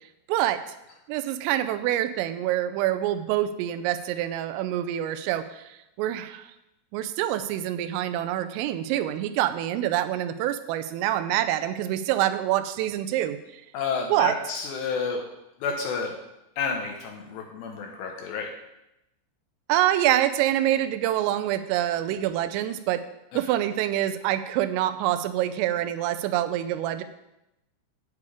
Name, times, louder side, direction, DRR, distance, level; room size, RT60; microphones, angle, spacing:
voice 1, 0.3-0.6 1.1-5.7 6.0-6.5 6.9-13.4 14.1-14.4 19.7-23.0 23.3-27.0, right 13 dB, 85° right, 11 dB, 3.1 m, -26 dB
voice 2, 13.7-15.2 15.6-16.1 16.6-18.5, left 5 dB, 75° left, 2 dB, 2.6 m, -30 dB
8.4 x 8.4 x 4.9 m, 0.90 s
omnidirectional pair, 5.9 m